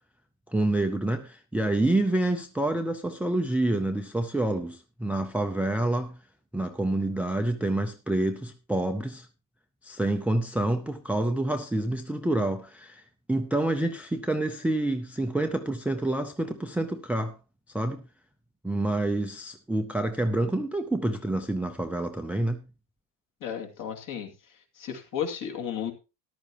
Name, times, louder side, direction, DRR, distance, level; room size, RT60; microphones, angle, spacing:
voice 1, 0.5-6.2 6.5-9.3 9.8-17.4 17.7-18.0 18.6-22.6, right 1 dB, 5° right, 0.5 m, -28 dB
voice 2, 23.4-24.3 24.8-25.9, left 8 dB, 50° left, 2.4 m, -33 dB
14.0 x 11.0 x 2.9 m
cardioid pair, 155°, 42 cm